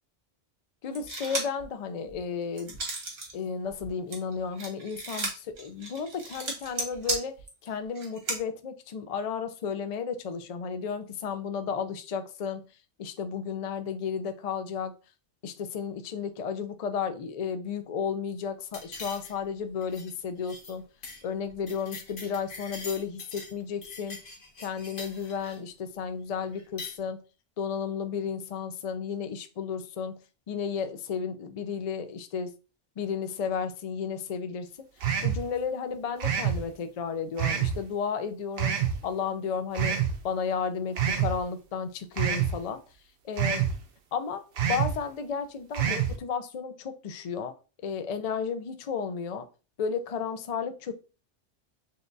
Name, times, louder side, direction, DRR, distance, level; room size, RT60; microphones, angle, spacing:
voice 1, 0.8-2.8 3.3-7.3 7.6-12.7 13.0-14.9 15.4-20.9 21.2-24.2 24.6-27.2 27.6-30.2 30.5-32.5 33.0-34.7 35.2-38.7 39.0-40.0 40.2-42.8 43.2-43.6 44.1-44.4 44.7-47.5 47.8-49.5 49.8-50.9, left 6 dB, 65° left, 9 dB, 0.3 m, -33 dB
sound 1, 0.9-1.6 2.1-3.3 3.7-8.4, right 2 dB, 85° right, 1.7 m, -34 dB
sound 2, 18.7-19.5 19.8-20.1 20.4-20.7 21.0-21.2 21.5-23.5 23.8-25.6 26.5-27.0, left 3 dB, 50° left, 1.1 m, -43 dB
sound 3, 35.0-35.4 36.2-36.6 37.4-37.8 38.6-39.0 39.7-40.1 41.0-41.3 42.2-42.5 43.4-43.7 44.6-44.9 45.7-46.1, right 9 dB, 65° right, 0.8 m, -26 dB
6.5 x 2.3 x 2.6 m, 0.33 s
omnidirectional pair, 1.2 m